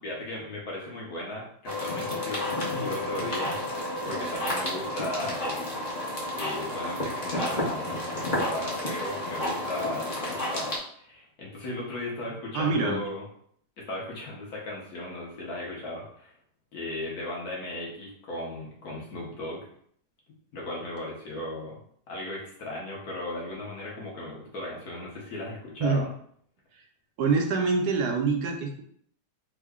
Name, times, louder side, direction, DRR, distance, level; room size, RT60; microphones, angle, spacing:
voice 1, 0.0-3.6 4.0-5.9 6.3-10.7 11.0-13.2 13.8-16.3 16.7-19.7 20.5-21.7 22.1-26.1, left 1 dB, 65° left, -3 dB, 1.4 m, -36 dB
sound 1, 1.7-10.8, left 1 dB, 40° left, 0.6 m, -31 dB
voice 2, 12.5-13.0 25.8-26.0 27.2-28.8, right 4 dB, 75° right, 2 dB, 1.2 m, -25 dB
3.6 x 2.1 x 3.5 m, 0.62 s
omnidirectional pair, 1.8 m